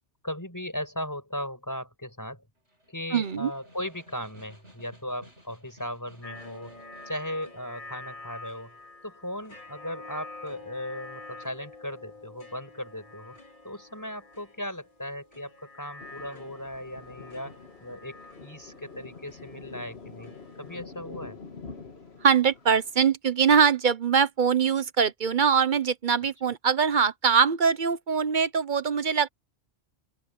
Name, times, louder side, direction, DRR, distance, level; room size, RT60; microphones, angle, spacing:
voice 1, 0.2-2.5 2.9-8.7 9.0-13.4 13.6-20.3 20.6-21.4, equal, 15° left, 5.7 m, -37 dB
Snare drum, 2.6-7.6, equal, 75° right, 6.7 m, -56 dB
voice 2, 3.1-3.5 22.2-29.3, right 6 dB, 50° right, 0.8 m, -23 dB
sound 1, 6.2-20.8, left 2 dB, 45° left, 3.2 m, -47 dB
Thunder, 16.0-23.1, left 4 dB, 60° left, 2.1 m, -46 dB
open air
omnidirectional pair, 1.2 m